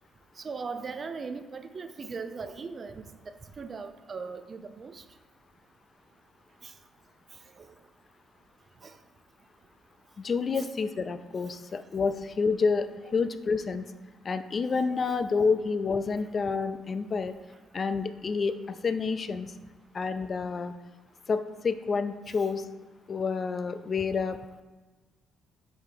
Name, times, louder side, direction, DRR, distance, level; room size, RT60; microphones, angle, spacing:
voice 1, 0.4-5.0 6.6-6.7 7.6-7.7 8.8-8.9 10.6-10.7 14.7-15.0, right 4 dB, 30° right, 9 dB, 0.5 m, -39 dB
voice 2, 10.2-13.9 14.2-17.4 17.7-19.5 19.9-20.7 21.3-22.7 23.1-24.4, left 5 dB, 30° left, 10 dB, 0.4 m, -29 dB
7.2 x 4.0 x 5.0 m, 1.3 s
cardioid pair, 155°, 0 cm